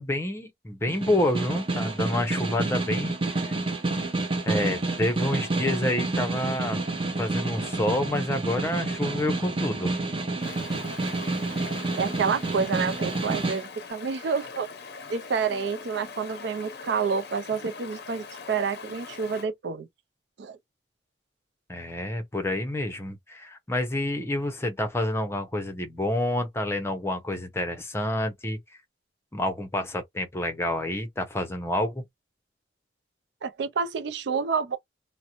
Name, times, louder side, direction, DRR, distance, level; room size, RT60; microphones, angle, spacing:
voice 1, 0.0-3.5 4.5-6.8 7.2-9.9 21.7-28.6 29.3-32.0, left 1 dB, 15° left, 0.6 m, -28 dB
Snare drum, 0.9-13.6, right 2 dB, 30° right, 0.7 m, -29 dB
Stream, 10.4-19.4, left 5 dB, 60° left, 0.5 m, -42 dB
voice 2, 11.9-14.7 15.1-19.9 20.4-20.6 33.4-34.8, right 5 dB, 65° right, 0.4 m, -28 dB
2.5 x 2.0 x 2.9 m
head